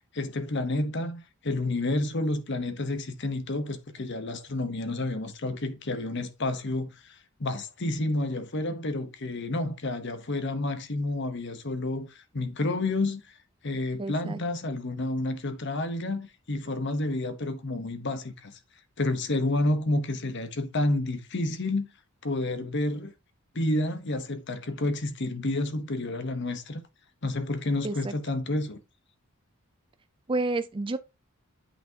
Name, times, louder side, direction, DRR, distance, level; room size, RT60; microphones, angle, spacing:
voice 1, 0.1-13.3 13.6-18.6 19.0-21.9 22.2-23.1 23.5-26.8 27.2-28.8, left 2 dB, 55° left, 1.0 m, -30 dB
voice 2, 14.0-14.4 27.8-28.1 30.3-31.0, right 2 dB, 25° right, 0.4 m, -30 dB
8.2 x 5.9 x 2.8 m
head